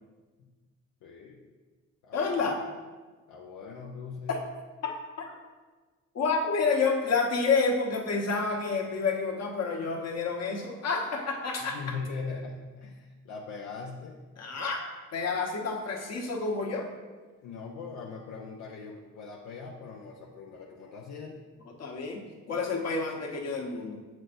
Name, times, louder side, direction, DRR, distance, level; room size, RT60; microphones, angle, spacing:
voice 1, 1.0-1.4 2.0-2.4 3.3-4.4 11.7-14.2 17.4-21.4, left 4 dB, 75° left, -2 dB, 0.7 m, -40 dB
voice 2, 2.1-2.6 4.3-4.4 4.8-4.9 5.2-5.3 6.1-11.8 14.4-16.9 21.8-22.2 22.5-24.0, left 4 dB, 55° left, -1 dB, 1.3 m, -29 dB
7.7 x 6.0 x 2.6 m, 1.3 s
cardioid pair, 90°, 30 cm